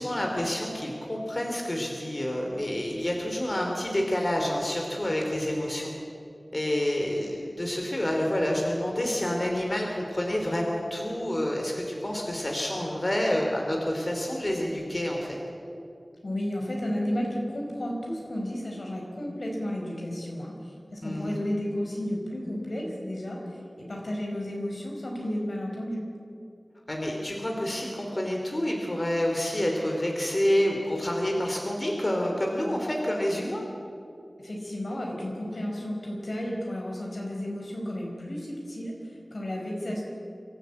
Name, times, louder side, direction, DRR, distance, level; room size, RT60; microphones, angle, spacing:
voice 1, 0.0-5.9 6.5-15.4 21.0-21.3 26.9-33.6, left 1 dB, 40° left, 0 dB, 3.0 m, -28 dB
voice 2, 16.2-26.0 34.4-40.0, left 1 dB, 75° left, -1 dB, 4.8 m, -33 dB
24.5 x 13.5 x 8.3 m, 2.6 s
wide cardioid pair, 45°, 0 cm